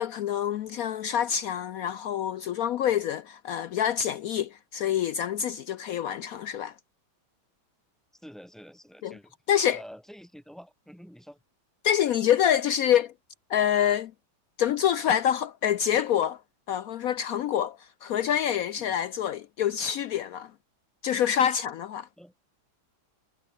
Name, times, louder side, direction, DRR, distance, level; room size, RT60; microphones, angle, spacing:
voice 1, 0.0-6.7 9.0-9.1 9.5-9.8 11.8-13.1 13.5-14.1 14.6-16.4 16.7-20.5 21.0-22.1, left 10 dB, 85° left, 0.7 m, -26 dB
voice 2, 8.1-9.3 9.7-11.4 18.8-19.0 21.5-21.6 22.2-22.3, equal, ahead, 7.0 m, -48 dB
omnidirectional pair, 2.1 m